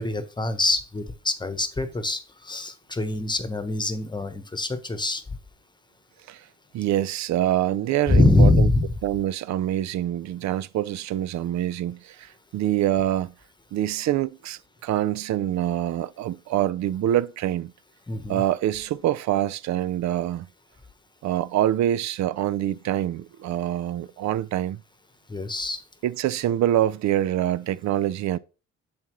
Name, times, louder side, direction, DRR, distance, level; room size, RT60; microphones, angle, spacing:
voice 1, 0.0-5.2 8.1-8.9 18.1-18.4 25.3-25.8, left 2 dB, 15° left, 1.1 m, -23 dB
voice 2, 6.7-8.7 9.0-13.3 13.7-17.7 18.3-20.5 21.2-24.8 26.0-28.4, right 12 dB, 65° right, 0.5 m, -25 dB
7.4 x 5.7 x 3.1 m
cardioid pair, 90°, 30 cm